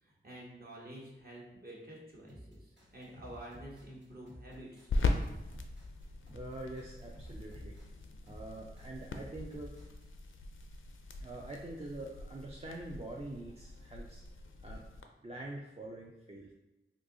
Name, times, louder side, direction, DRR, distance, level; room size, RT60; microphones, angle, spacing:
voice 1, 0.0-4.9, right 1 dB, 45° right, -4 dB, 1.2 m, -49 dB
sound 1, 2.3-10.0, equal, 60° right, 1.4 m, -53 dB
sound 2, 2.8-15.0, left 3 dB, 70° left, 0.4 m, -40 dB
voice 2, 6.3-7.8 8.3-9.8 11.2-14.2 14.6-14.9 15.2-16.5, right 2 dB, 30° right, -2 dB, 0.4 m, -45 dB
2.7 x 2.6 x 3.7 m, 1.0 s
wide cardioid pair, 45°, 21 cm